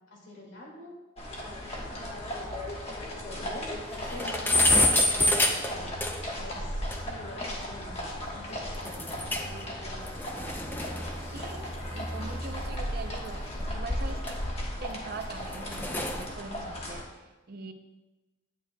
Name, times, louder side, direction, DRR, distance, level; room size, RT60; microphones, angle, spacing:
voice 1, 0.1-1.0 1.4-2.3 2.9-5.9 6.4-9.0 9.4-10.2, left 1 dB, 60° left, -2 dB, 2.1 m, -46 dB
sound 1, 1.2-17.0, equal, 30° left, 1.2 m, -37 dB
sound 2, 2.1-2.2 2.5-2.6 3.0-3.1 3.4-3.5 3.8-6.4 6.9-7.0 8.8-9.6 9.9-12.5 13.3-15.0 15.4-16.3, left 1 dB, 10° left, 0.4 m, -28 dB
voice 2, 11.3-14.4 14.8-17.7, right 3 dB, 45° right, 5 dB, 0.5 m, -43 dB
9.0 x 9.0 x 2.2 m, 1.1 s
head